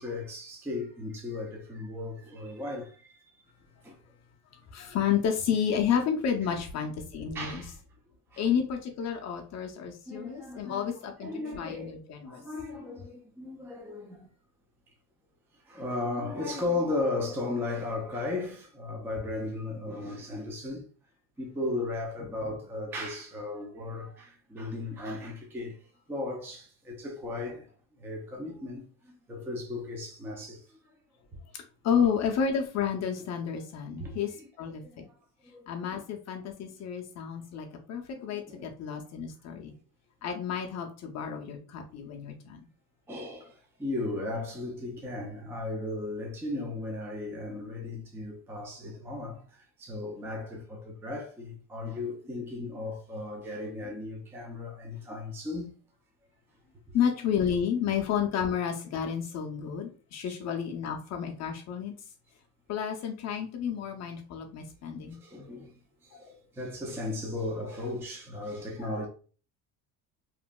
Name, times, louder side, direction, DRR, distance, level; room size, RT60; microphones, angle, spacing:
voice 1, 0.0-3.2 3.8-4.0 7.3-7.8 8.3-8.5 10.1-12.0 12.3-14.3 15.5-20.9 21.4-27.7 28.0-31.0 31.3-31.4 34.0-34.5 34.8-35.1 35.4-35.8 38.1-38.7 43.1-55.7 56.9-57.0 60.3-60.4 65.1-69.1, left 2 dB, 5° right, 0.4 m, -36 dB
voice 2, 4.5-7.6 8.4-11.3 11.6-12.4 31.5-34.3 34.6-35.0 35.7-39.7 40.2-42.6 56.9-61.9 62.7-65.2 66.1-66.2 68.8-69.1, left 7 dB, 45° left, 0.5 m, -31 dB
2.9 x 2.6 x 2.2 m
cardioid pair, 130°, 38 cm